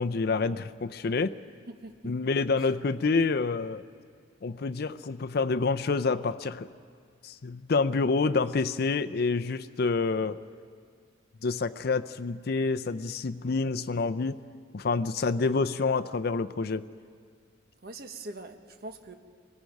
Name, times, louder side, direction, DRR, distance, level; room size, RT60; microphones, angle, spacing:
voice 1, 0.0-1.4 2.0-3.8 4.4-6.7 7.2-10.4 11.4-14.4 14.7-16.8, left 4 dB, 50° left, 11 dB, 0.5 m, -28 dB
voice 2, 1.7-2.1 17.8-19.2, right 2 dB, 50° right, 6 dB, 1.3 m, -42 dB
26.5 x 19.0 x 5.3 m, 2.1 s
head